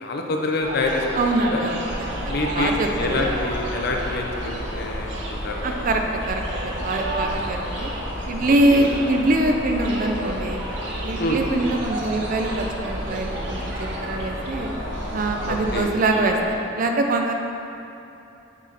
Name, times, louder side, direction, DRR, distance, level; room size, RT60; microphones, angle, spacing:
voice 1, 0.0-1.0 1.5-1.6 2.3-5.9 8.4-8.9 11.2-11.4 15.5-15.9, left 2 dB, 55° left, 2 dB, 0.5 m, -27 dB
sound 1, 0.6-16.6, right 1 dB, 65° right, 0.8 m, -33 dB
voice 2, 1.2-3.3 5.6-7.9 8.3-10.6 11.0-14.7 15.1-17.3, right 2 dB, 45° right, 3 dB, 0.5 m, -24 dB
sound 2, 1.8-15.8, equal, 80° left, 1.2 m, -33 dB
6.1 x 4.3 x 3.9 m, 2.9 s
head